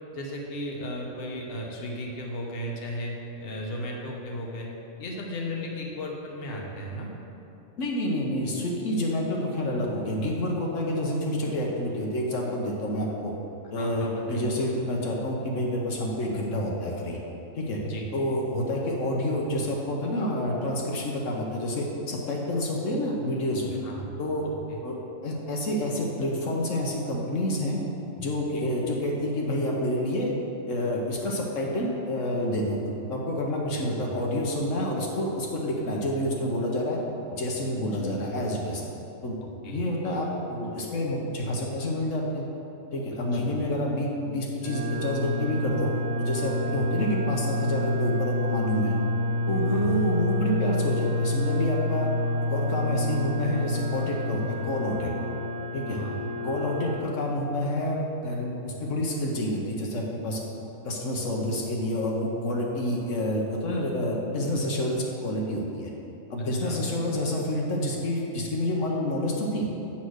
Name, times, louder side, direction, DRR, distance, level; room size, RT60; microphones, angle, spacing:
voice 1, 0.1-4.7 5.0-7.1 13.7-14.4 17.8-18.1 23.8-24.0 24.4-24.8 28.5-28.7 33.7-34.1 38.0-38.1 39.4-39.8 43.3-43.6 46.7-46.9 49.7-49.9 55.9-56.2 66.4-66.8, equal, 50° left, -1 dB, 1.1 m, -36 dB
voice 2, 7.8-13.3 13.7-17.2 17.5-17.8 18.1-23.8 24.2-24.5 24.8-24.9 25.2-27.8 28.2-30.3 30.7-32.8 33.1-37.0 37.3-38.8 39.2-39.4 39.7-42.5 42.9-45.9 46.2-48.9 49.5-52.1 52.5-55.1 55.7-56.0 56.4-60.4 60.8-65.9 66.3-69.7, left 1 dB, 70° left, -2 dB, 1.2 m, -28 dB
sound 1, 44.6-57.0, left 1 dB, 55° right, 1.7 m, -28 dB
8.4 x 4.3 x 6.3 m, 2.9 s
omnidirectional pair, 1.4 m